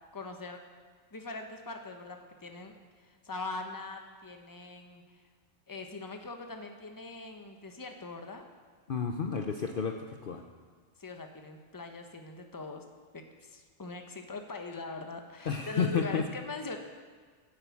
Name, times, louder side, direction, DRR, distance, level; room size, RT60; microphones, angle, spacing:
voice 1, 0.1-0.6 1.1-2.7 3.0-5.0 5.7-8.4 11.0-12.8 13.1-16.8, left 3 dB, 20° left, 4 dB, 0.9 m, -42 dB
voice 2, 8.9-10.4 15.5-16.2, left 6 dB, 50° left, 4 dB, 0.8 m, -31 dB
10.5 x 8.1 x 8.3 m, 1.5 s
omnidirectional pair, 1.3 m